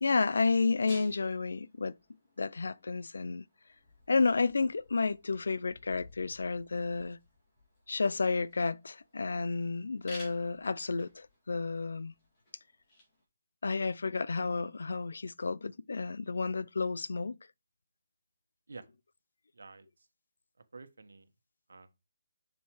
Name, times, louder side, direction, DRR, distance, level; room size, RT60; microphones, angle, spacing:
voice 1, 0.0-1.9 2.4-3.4 4.1-7.2 7.9-12.1 13.6-17.4, left 4 dB, 70° left, 0.4 m, -31 dB
sound 1, 0.9-13.2, left 1 dB, 20° left, 2.3 m, -56 dB
voice 2, 19.5-20.1 20.7-21.3 21.7-21.9, right 3 dB, 80° right, 1.3 m, -50 dB
7.1 x 6.5 x 3.1 m
hypercardioid pair, 175°, 0 cm